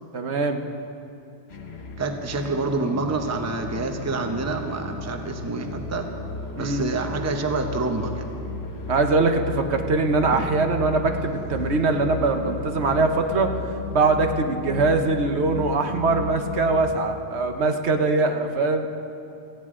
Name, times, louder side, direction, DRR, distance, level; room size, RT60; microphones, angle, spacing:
voice 1, 0.1-0.6 6.6-6.9 8.9-13.5 13.9-19.0, right 3 dB, 65° right, 6 dB, 1.2 m, -22 dB
sound 1, 1.5-16.9, left 3 dB, 60° left, 1.4 m, -34 dB
voice 2, 2.0-6.1 6.6-8.3 10.3-10.5, right 3 dB, 15° right, 5 dB, 0.7 m, -27 dB
18.0 x 15.0 x 3.7 m, 2.7 s
omnidirectional pair, 1.2 m